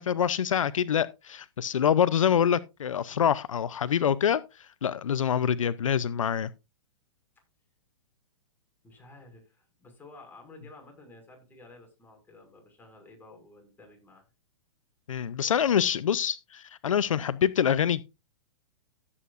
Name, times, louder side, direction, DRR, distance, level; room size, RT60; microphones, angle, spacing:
voice 1, 0.0-6.5 15.1-18.0, left 8 dB, 85° left, 0.6 m, -26 dB
voice 2, 8.8-14.2 15.4-15.9, left 2 dB, 10° left, 6.0 m, -52 dB
16.0 x 8.4 x 2.5 m
hypercardioid pair, 125°, 16 cm